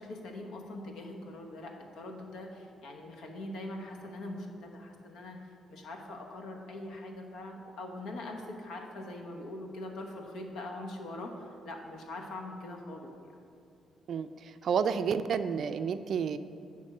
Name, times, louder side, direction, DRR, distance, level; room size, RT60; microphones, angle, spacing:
voice 1, 0.0-13.4, left 1 dB, 80° left, 2 dB, 1.0 m, -42 dB
voice 2, 14.1-16.4, right 6 dB, 60° right, 11 dB, 0.3 m, -30 dB
8.7 x 3.6 x 6.5 m, 2.6 s
cardioid pair, 90°, 0 cm